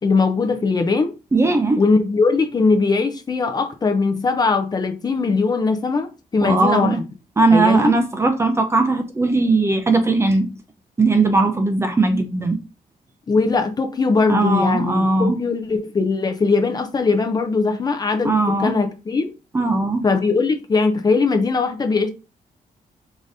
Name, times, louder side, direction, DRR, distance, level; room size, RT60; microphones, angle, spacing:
voice 1, 0.0-1.1 1.8-7.0 7.5-7.9 13.3-19.3 20.0-22.1, left 4 dB, 25° left, 0.6 m, -20 dB
voice 2, 1.3-1.8 6.4-7.0 7.4-10.5 11.0-12.6 14.3-15.4 18.2-18.7 19.5-20.0, right 3 dB, 15° right, 0.6 m, -18 dB
4.9 x 3.8 x 2.7 m
wide cardioid pair, 175°, 15 cm